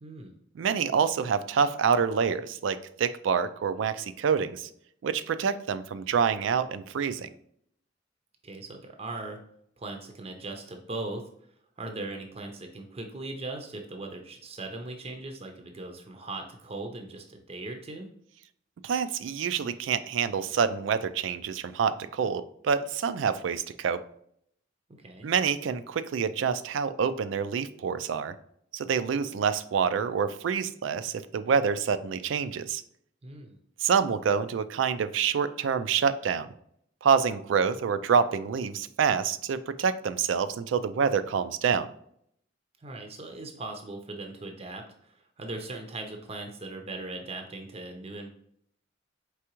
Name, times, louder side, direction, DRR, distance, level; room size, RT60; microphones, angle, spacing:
voice 1, 0.0-0.3 8.4-9.4 9.8-11.3 11.8-18.1 25.0-25.3 33.2-33.6 42.8-48.3, right 2 dB, 35° right, 4 dB, 0.6 m, -39 dB
voice 2, 0.6-4.7 5.0-7.3 18.8-24.0 25.2-28.3 28.7-32.8 33.8-36.5 37.0-41.9, right 6 dB, 85° right, 12 dB, 0.3 m, -27 dB
4.7 x 3.4 x 2.9 m, 0.68 s
head